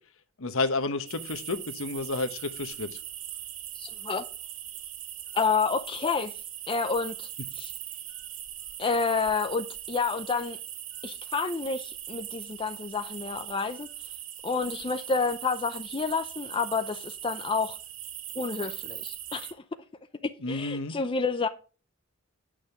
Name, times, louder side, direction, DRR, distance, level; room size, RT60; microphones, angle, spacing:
voice 1, 0.4-3.0 20.4-21.0, left 3 dB, 65° left, 1.0 m, -31 dB
sound 1, 1.1-19.5, right 11 dB, 75° right, 0.9 m, -40 dB
voice 2, 3.8-4.3 5.3-6.3 6.7-7.3 7.5-7.7 8.8-10.6 11.0-13.9 14.4-17.8 18.4-19.5 20.2-21.5, left 4 dB, 25° left, 0.5 m, -29 dB
8.9 x 6.4 x 5.1 m
head